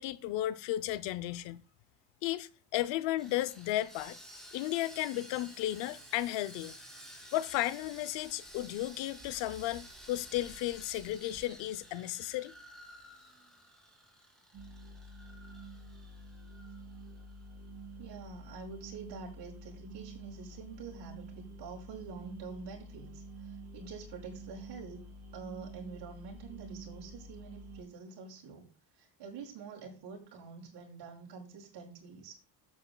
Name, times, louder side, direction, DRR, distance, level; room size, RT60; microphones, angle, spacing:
voice 1, 0.0-1.6 2.2-4.2 4.5-6.7 7.3-12.5, left 15 dB, 85° left, 0.8 m, -34 dB
Sawing, 3.2-17.4 17.7-17.9 18.3-18.4, equal, ahead, 2.8 m, -53 dB
sound 1, 14.5-27.8, right 2 dB, 40° right, 4.8 m, -49 dB
voice 2, 18.0-25.0 25.3-32.3, right 5 dB, 70° right, 5.3 m, -47 dB
12.5 x 8.7 x 2.3 m
cardioid pair, 125°, 43 cm